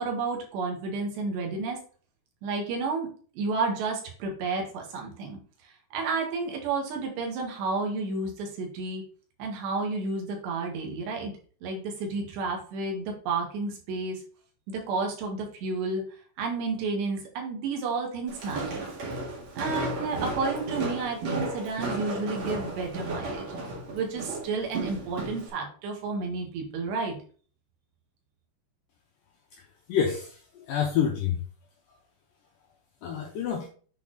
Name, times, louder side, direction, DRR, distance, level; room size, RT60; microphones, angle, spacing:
voice 1, 0.0-1.8 2.4-3.1 3.4-9.0 9.4-11.3 11.6-14.2 14.7-16.0 16.4-18.9 19.6-23.5 23.9-27.2, right 3 dB, 85° right, 1 dB, 3.9 m, -31 dB
Walk footsteps, 18.3-25.5, right 2 dB, 50° right, 2.6 m, -34 dB
voice 2, 29.9-31.4 33.0-33.7, left 8 dB, 75° left, 1 dB, 2.1 m, -27 dB
8.4 x 4.3 x 3.9 m, 0.42 s
omnidirectional pair, 4.8 m